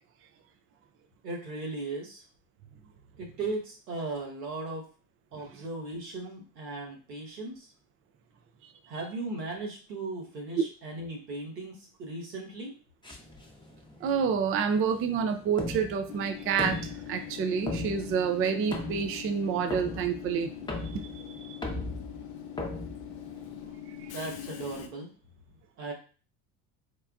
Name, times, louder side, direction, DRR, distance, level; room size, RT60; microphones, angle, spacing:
voice 1, 1.2-2.2 3.2-4.9 5.3-7.7 8.9-12.7 23.9-25.1 25.8-25.9, right 2 dB, 90° right, -1 dB, 1.1 m, -37 dB
sound 1, 13.0-23.7, left 2 dB, 10° left, 0.8 m, -39 dB
voice 2, 14.0-20.5 20.8-21.6 24.0-24.1, right 6 dB, 30° right, 8 dB, 0.4 m, -28 dB
Train / Subway metro underground, 16.1-24.9, left 9 dB, 50° left, 0.6 m, -43 dB
4.3 x 2.2 x 2.3 m, 0.37 s
hypercardioid pair, 70°, 48 cm